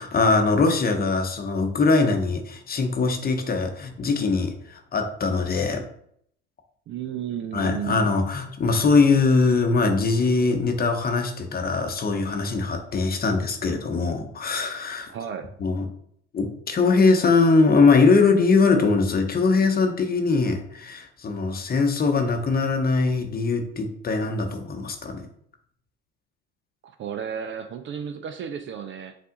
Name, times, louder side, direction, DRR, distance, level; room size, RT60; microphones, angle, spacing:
voice 1, 0.0-5.8 7.5-15.1 15.6-15.8 16.3-25.3, left 4 dB, 25° left, 5 dB, 0.9 m, -21 dB
voice 2, 6.9-8.1 15.1-15.5 26.8-29.2, right 8 dB, 35° right, 8 dB, 0.4 m, -33 dB
5.6 x 2.5 x 3.7 m, 0.67 s
hypercardioid pair, 75°, 34 cm